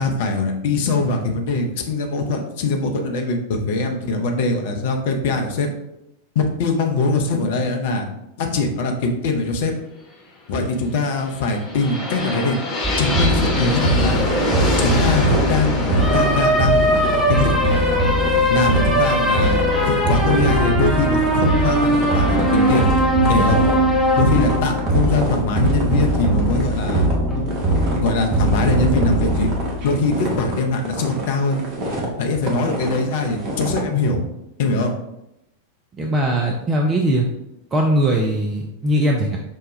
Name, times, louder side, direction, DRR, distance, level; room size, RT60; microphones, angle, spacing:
voice 1, 0.0-5.7 6.3-8.1 8.4-9.7 10.5-12.6 13.0-14.2 14.8-16.8 17.3-17.5 18.5-19.6 19.9-22.9 23.3-23.6 24.1-27.1 28.0-29.5 29.8-31.7 32.2-34.2 34.6-34.9, left 3 dB, 50° left, 4 dB, 0.6 m, -22 dB
sound 1, 11.1-19.0, left 1 dB, 20° left, 1.0 m, -26 dB
sound 2, 12.8-30.4, right 1 dB, ahead, 0.8 m, -19 dB
sound 3, 14.2-33.8, right 1 dB, 40° right, 0.9 m, -29 dB
voice 2, 36.0-37.3 37.7-39.4, right 1 dB, 20° right, 1 dB, 0.4 m, -20 dB
5.4 x 2.2 x 3.1 m, 0.86 s
figure-of-eight pair, 90°, 0 cm